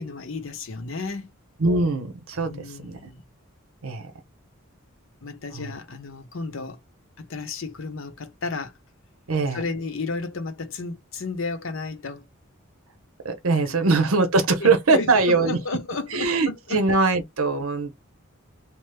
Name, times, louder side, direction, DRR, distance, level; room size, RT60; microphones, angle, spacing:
voice 1, 0.0-1.4 2.4-3.2 5.2-6.8 7.2-8.7 9.5-12.2 13.7-13.9 14.6-16.8, left 3 dB, 70° left, 0.7 m, -33 dB
voice 2, 1.6-3.1 3.8-4.1 5.5-5.7 9.3-9.6 13.2-15.6 16.1-17.9, right 3 dB, 85° right, 0.8 m, -22 dB
3.0 x 2.0 x 3.3 m
head